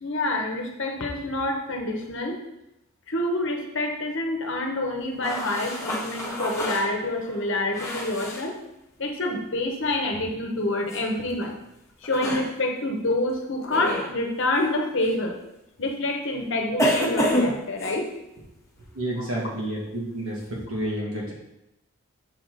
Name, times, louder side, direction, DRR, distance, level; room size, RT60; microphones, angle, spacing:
voice 1, 0.0-2.4 3.1-8.5 9.0-11.6 12.0-15.3 15.8-18.1, left 2 dB, 60° left, 3 dB, 1.0 m, -27 dB
sound 1, 5.2-8.5 10.9-11.0 12.0-12.5 13.7-14.1 15.0-15.1 16.8-18.0, equal, 15° left, 1.0 m, -27 dB
voice 2, 18.9-21.3, right 1 dB, 90° right, -4 dB, 2.1 m, -30 dB
5.8 x 4.8 x 3.9 m, 0.88 s
head